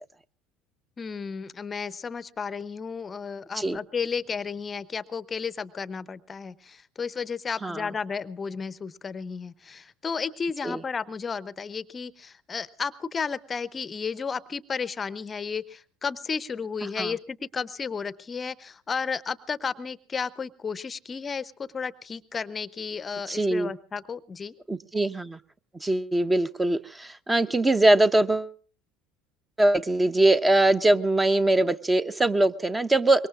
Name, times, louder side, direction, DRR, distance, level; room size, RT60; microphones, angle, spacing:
voice 1, 1.0-24.5, left 5 dB, 25° left, 18 dB, 0.7 m, -33 dB
voice 2, 23.3-23.7 24.7-25.4 25.8-28.5 29.6-33.3, right 2 dB, 15° right, 12 dB, 0.8 m, -22 dB
25.0 x 22.5 x 2.5 m, 0.42 s
figure-of-eight pair, 65°, 0 cm